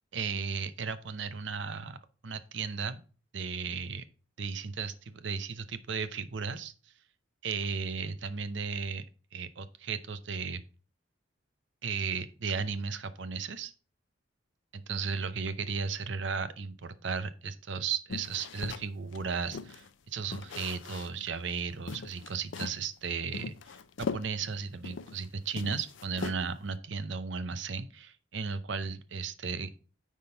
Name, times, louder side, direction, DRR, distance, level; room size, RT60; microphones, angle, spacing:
voice 1, 0.1-2.0 2.2-3.0 3.3-4.0 4.4-6.7 7.4-9.1 9.3-10.6 11.8-13.7 14.7-29.7, right 5 dB, 65° right, 13 dB, 0.6 m, -35 dB
sound 1, 18.1-19.9 20.3-21.3 21.5-21.6 21.9-22.8 23.3-25.3 25.5-26.7, left 4 dB, 70° left, 0.5 m, -40 dB
9.8 x 3.7 x 3.8 m, 0.36 s
head